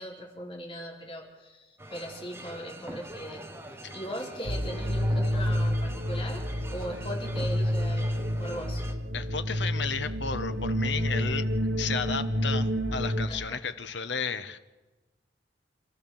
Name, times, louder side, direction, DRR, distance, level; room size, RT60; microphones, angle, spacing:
voice 1, 0.0-3.5 3.9-6.4 6.7-8.8 13.3-13.6, equal, 30° left, -1 dB, 4.4 m, -39 dB
sound 1, 1.8-8.9, right 1 dB, 15° right, 1.3 m, -44 dB
sound 2, 4.5-13.3, equal, 80° right, 1.4 m, -29 dB
voice 2, 9.1-11.5 11.8-14.6, left 5 dB, 75° left, 10 dB, 1.2 m, -33 dB
27.0 x 14.5 x 7.2 m, 1.2 s
head